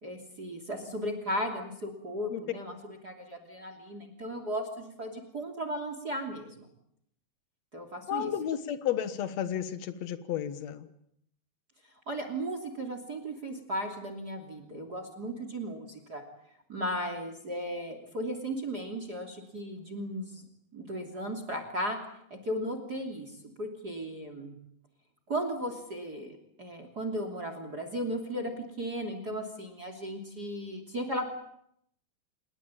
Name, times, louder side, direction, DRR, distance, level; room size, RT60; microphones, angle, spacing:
voice 1, 0.0-6.7 7.7-8.3 12.1-16.2 16.7-20.4 20.7-22.0 22.3-24.5 25.3-31.3, equal, 25° right, 8 dB, 2.7 m, -36 dB
voice 2, 8.1-10.9, left 10 dB, 85° left, 11 dB, 1.5 m, -32 dB
28.5 x 20.5 x 9.0 m, 0.74 s
omnidirectional pair, 5.3 m